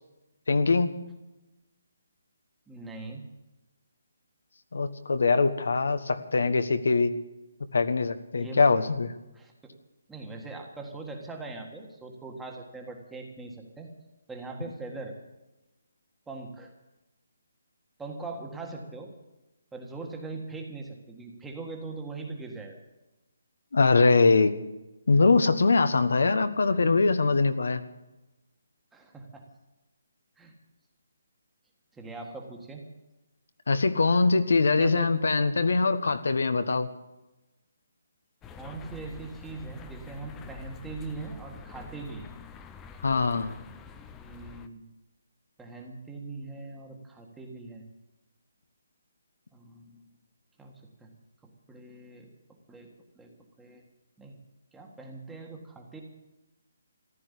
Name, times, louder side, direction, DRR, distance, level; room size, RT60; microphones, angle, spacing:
voice 1, 0.5-0.9 4.7-7.1 7.7-9.1 23.7-24.5 25.1-27.8 33.7-36.9 43.0-43.6, left 4 dB, 75° left, 10 dB, 1.3 m, -23 dB
voice 2, 2.7-3.2 8.4-8.6 9.3-9.5 10.1-13.9 14.3-15.1 16.3-16.7 18.0-19.1 19.7-22.8 28.9-29.4 30.4-30.5 31.9-32.8 34.8-35.1 38.6-42.3 44.1-44.8 45.6-47.8 49.5-50.0 50.6-50.7 51.0-51.1 51.7-52.3 52.7-52.9 53.1-53.3 53.6-53.8 54.2-54.3 54.7-56.0, right 3 dB, 5° right, 2 dB, 1.7 m, -41 dB
sound 1, 38.4-44.7, left 5 dB, 10° left, 0.6 m, -46 dB
14.5 x 11.5 x 8.4 m, 0.99 s
hypercardioid pair, 170°, 0 cm